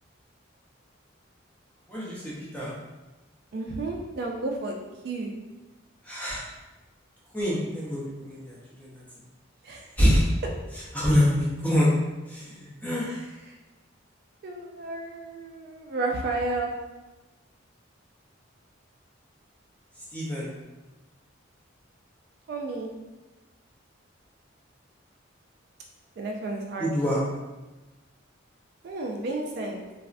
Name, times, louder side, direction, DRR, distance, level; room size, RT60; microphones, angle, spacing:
voice 1, 1.9-2.7 6.0-6.5 7.3-9.0 10.0-10.2 10.9-11.9 12.3-13.1 20.1-20.5 26.8-27.2, equal, 10° left, -7 dB, 0.6 m, -25 dB
voice 2, 3.5-4.8 5.0-5.4 9.6-9.9 13.0-13.6 14.4-16.7 22.5-22.9 26.2-26.9 28.8-29.8, right 2 dB, 50° right, 0 dB, 0.3 m, -32 dB
3.2 x 2.0 x 2.5 m, 1.1 s
head